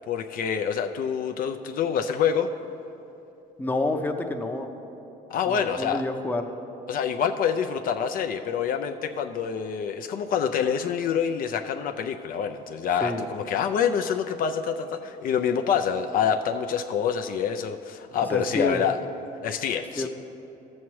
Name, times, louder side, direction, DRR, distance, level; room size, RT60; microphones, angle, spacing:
voice 1, 0.1-2.5 5.3-6.0 6.9-19.0 19.4-20.1, left 7 dB, 55° left, 6 dB, 0.4 m, -26 dB
voice 2, 3.6-4.7 5.5-6.5 13.0-13.2 18.3-18.8 20.0-20.1, left 2 dB, 10° left, 5 dB, 0.6 m, -28 dB
13.0 x 7.2 x 3.1 m, 2.9 s
cardioid pair, 110°, 17 cm